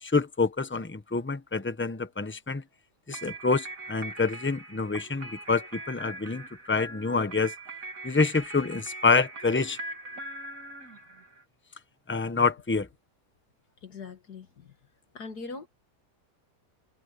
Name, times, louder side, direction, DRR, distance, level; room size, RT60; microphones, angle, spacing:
voice 1, 0.0-2.6 3.1-7.5 8.0-9.8 12.1-12.9, left 4 dB, 10° left, 0.7 m, -27 dB
sound 1, 3.1-11.4, right 2 dB, 55° right, 3.0 m, -41 dB
voice 2, 13.8-14.7 15.1-15.7, left 4 dB, 75° left, 2.4 m, -41 dB
omnidirectional pair, 1.7 m